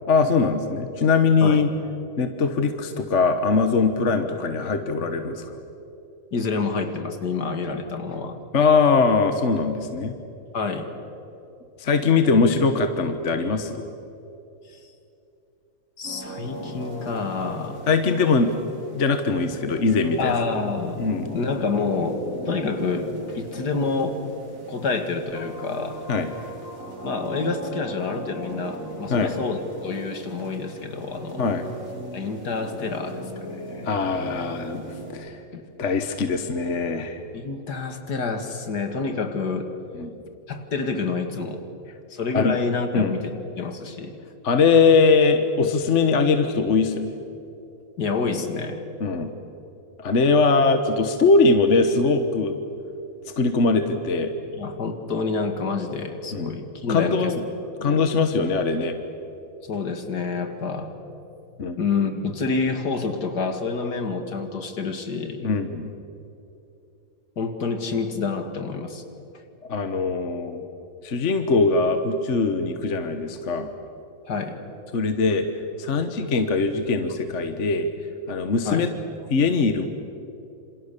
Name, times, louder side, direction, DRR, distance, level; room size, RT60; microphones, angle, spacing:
voice 1, 0.1-1.7 2.2-5.6 8.5-10.1 11.8-13.8 17.9-18.5 18.9-20.3 21.0-21.3 26.1-26.3 29.1-29.3 31.4-31.6 33.8-35.4 35.8-37.2 39.9-40.1 42.3-42.6 42.9-43.2 44.4-47.2 49.0-49.3 50.0-52.6 53.4-54.3 56.3-56.5 56.9-57.4 57.8-59.0 61.6-61.8 65.4-65.9 69.7-70.6 71.0-73.7 74.9-75.5 75.8-77.9 78.3-78.9 79.3-79.9, left 4 dB, 45° left, 7 dB, 1.4 m, -21 dB
voice 2, 6.3-8.4 10.5-10.9 14.7-14.8 16.0-17.8 20.2-21.1 21.3-24.2 24.7-26.0 27.0-31.5 32.1-33.9 35.5-35.6 37.3-39.7 40.5-41.6 42.1-44.1 48.0-48.8 54.6-57.3 57.8-58.1 59.6-61.0 61.8-65.5 67.4-69.0 74.3-74.6 78.7-78.9, left 4 dB, 60° left, 7 dB, 2.5 m, -28 dB
sound 1, 16.0-35.1, right 1 dB, 45° right, 5.2 m, -38 dB
27.5 x 27.0 x 6.8 m, 2.8 s
omnidirectional pair, 2.0 m